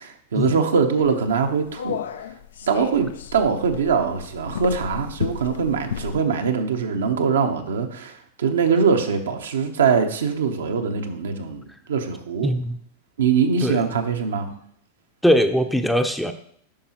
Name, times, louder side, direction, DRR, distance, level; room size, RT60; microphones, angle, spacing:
voice 1, 0.0-2.0 2.6-11.6 11.9-12.5 13.2-14.5, right 6 dB, 80° right, 5 dB, 0.7 m, -22 dB
sound 1, 1.0-6.2, left 8 dB, 75° left, 0.4 m, -33 dB
voice 2, 12.4-12.8 13.6-13.8 15.2-16.3, equal, ahead, 7 dB, 0.5 m, -20 dB
8.4 x 5.4 x 2.9 m, 0.64 s
hypercardioid pair, 100°, 0 cm